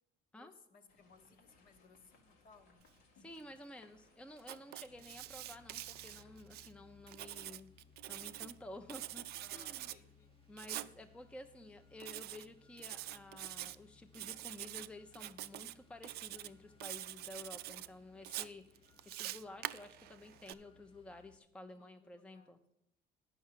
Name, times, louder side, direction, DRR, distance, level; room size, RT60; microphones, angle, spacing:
voice 1, 0.3-2.9 5.0-5.1 9.4-10.3 21.7-22.5, left 4 dB, 55° left, 6 dB, 1.2 m, -63 dB
sound 1, 0.9-6.4, left 3 dB, 90° left, 1.7 m, -68 dB
voice 2, 3.2-7.7 8.1-9.9 10.5-22.6, left 1 dB, 5° left, 7 dB, 0.6 m, -52 dB
Writing, 4.4-6.7 7.1-8.5 8.9-10.0 10.6-10.9 12.0-12.5 12.8-13.7 14.1-14.9 15.1-15.7 16.0-16.5 16.8-17.9 18.2-20.5, right 15 dB, 70° right, 0.4 m, -45 dB
sound 2, 4.8-21.4, left 5 dB, 35° left, 0.9 m, -65 dB
9.2 x 5.7 x 7.4 m, 0.82 s
cardioid pair, 110°, 17 cm